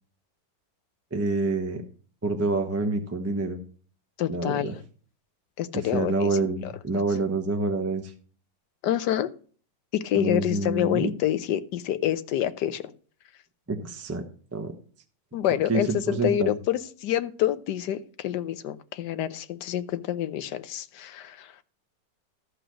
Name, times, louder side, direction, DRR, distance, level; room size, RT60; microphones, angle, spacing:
voice 1, 1.1-1.8 2.2-3.6 4.3-4.7 5.7-8.1 10.1-11.1 13.7-14.2 14.5-14.7 15.7-16.5, right 3 dB, 10° right, 0.8 m, -27 dB
voice 2, 4.2-4.7 5.6-6.3 6.6-6.7 8.8-9.3 9.9-12.8 15.3-21.5, left 11 dB, 75° left, 1.3 m, -27 dB
14.0 x 4.9 x 6.2 m
omnidirectional pair, 1.9 m